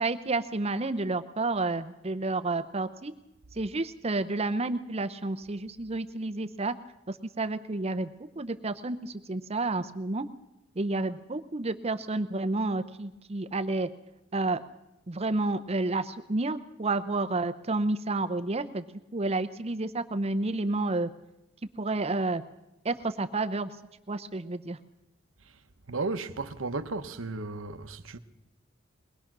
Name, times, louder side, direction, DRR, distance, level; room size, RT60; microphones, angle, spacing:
voice 1, 0.0-3.1 3.5-6.7 7.1-8.1 8.4-10.3 10.8-13.9 14.3-14.6 15.1-18.8 19.1-21.1 21.8-22.4 22.8-23.7 24.1-24.8, right 2 dB, 30° right, 0.7 m, -30 dB
voice 2, 25.9-28.2, right 3 dB, 85° right, 1.1 m, -34 dB
22.0 x 20.0 x 6.1 m
head